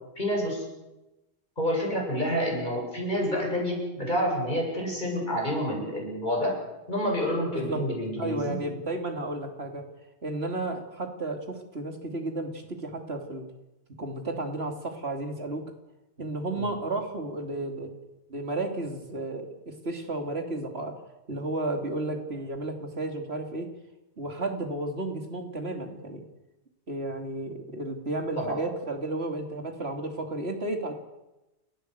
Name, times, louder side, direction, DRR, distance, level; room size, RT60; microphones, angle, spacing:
voice 1, 0.2-0.6 1.6-6.6 6.9-8.6 16.5-16.7 28.4-28.6, equal, 45° left, -1 dB, 7.9 m, -28 dB
voice 2, 7.5-7.8 8.2-9.9 10.2-13.4 14.0-15.6 16.2-17.9 18.3-20.9 21.3-23.7 24.2-26.2 26.9-30.9, right 2 dB, 75° right, 4 dB, 3.3 m, -33 dB
29.0 x 15.0 x 8.2 m, 0.99 s
omnidirectional pair, 1.1 m